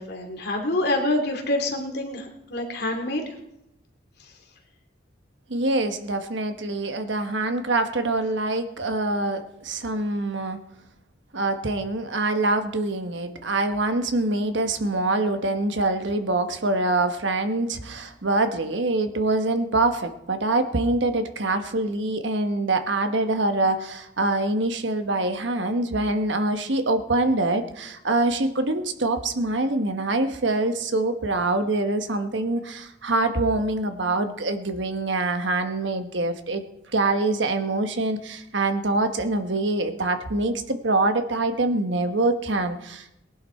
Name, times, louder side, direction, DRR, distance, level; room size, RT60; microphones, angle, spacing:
voice 1, 0.0-3.2, left 1 dB, 55° left, 2 dB, 2.7 m, -26 dB
voice 2, 5.5-10.6 11.3-36.6 36.9-43.1, right 2 dB, 70° right, 7 dB, 1.3 m, -25 dB
19.0 x 11.0 x 4.5 m, 0.83 s
head